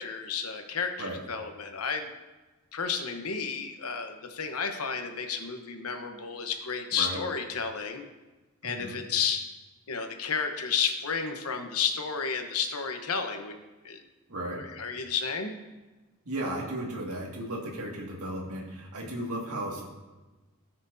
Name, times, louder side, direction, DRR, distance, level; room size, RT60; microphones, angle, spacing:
voice 1, 0.0-2.1 2.7-8.0 8.6-9.4 9.9-13.6 13.8-14.0 14.5-15.5, left 6 dB, 85° left, 5 dB, 1.0 m, -32 dB
voice 2, 8.6-9.0 14.3-14.6 16.3-19.8, right 1 dB, 80° right, -1 dB, 2.0 m, -35 dB
17.0 x 6.0 x 2.7 m, 1.2 s
head